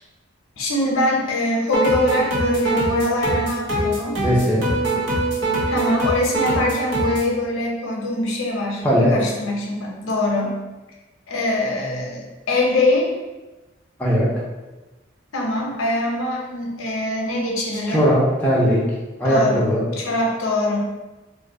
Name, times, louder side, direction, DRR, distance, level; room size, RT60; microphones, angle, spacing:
voice 1, 0.6-4.2 5.7-8.8 9.1-10.6 11.3-13.1 15.3-18.1 19.2-19.7 20.0-20.8, left 2 dB, 90° left, -1 dB, 0.6 m, -23 dB
sound 1, 1.7-7.3, right 2 dB, 65° right, 0.8 m, -23 dB
voice 2, 4.2-4.7 8.8-9.3 14.0-14.3 17.7-18.8 19.2-19.9, equal, 10° left, -7 dB, 0.6 m, -19 dB
2.6 x 2.1 x 3.6 m, 1.1 s
head